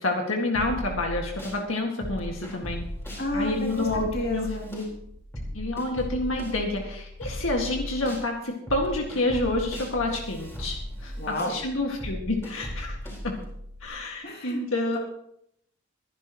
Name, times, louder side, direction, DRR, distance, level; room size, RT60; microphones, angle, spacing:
voice 1, 0.0-2.9 3.3-4.9 5.5-11.1 11.5-13.0 13.2-13.3 13.8-15.0, left 2 dB, 80° left, 1 dB, 2.1 m, -28 dB
sound 1, 0.5-1.6 2.0-8.3 8.7-13.9, equal, 10° left, 4.5 m, -37 dB
voice 2, 3.2-4.7 11.2-11.5 14.2-14.6, left 1 dB, 50° left, 0 dB, 2.9 m, -31 dB
23.0 x 10.5 x 3.1 m, 0.73 s
head